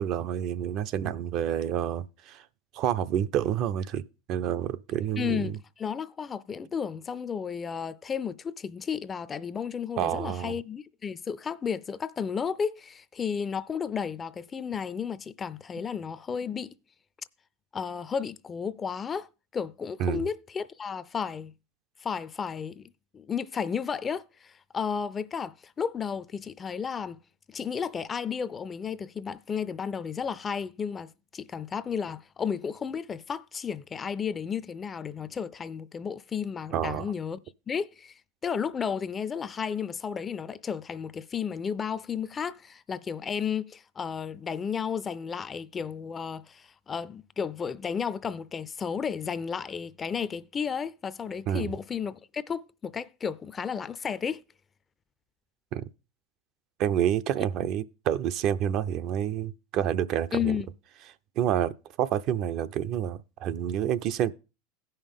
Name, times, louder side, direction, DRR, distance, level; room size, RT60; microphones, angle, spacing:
voice 1, 0.0-2.4 2.7-5.6 10.0-10.6 20.0-20.3 36.7-37.1 51.5-51.7 55.7-55.8 56.8-60.6 61.4-61.7 62.0-64.3, right 10 dB, 50° right, 0.5 m, -28 dB
voice 2, 5.2-16.7 17.7-19.3 19.5-21.5 22.0-27.2 27.5-37.4 37.7-38.1 38.4-54.4 60.3-60.7, left 7 dB, 25° left, 0.4 m, -33 dB
16.0 x 5.6 x 3.5 m
hypercardioid pair, 105°, 0 cm